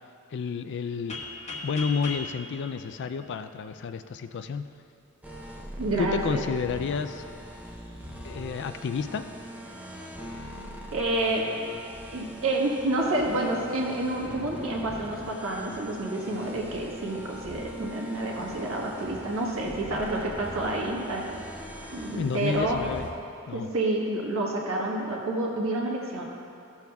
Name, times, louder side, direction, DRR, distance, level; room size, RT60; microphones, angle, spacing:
voice 1, 0.3-1.2 1.6-4.6 6.0-7.2 8.2-9.2 22.2-23.1 23.5-23.7, left 5 dB, 55° left, 10 dB, 0.3 m, -30 dB
sound 1, 1.1-3.8, left 3 dB, 30° left, 1.0 m, -39 dB
sound 2, 5.2-23.1, equal, 5° right, 0.6 m, -42 dB
voice 2, 5.8-6.4 10.9-11.5 12.1-21.4 21.9-22.8 23.5-26.3, right 2 dB, 70° right, -2 dB, 1.4 m, -29 dB
15.0 x 7.0 x 2.3 m, 2.7 s
head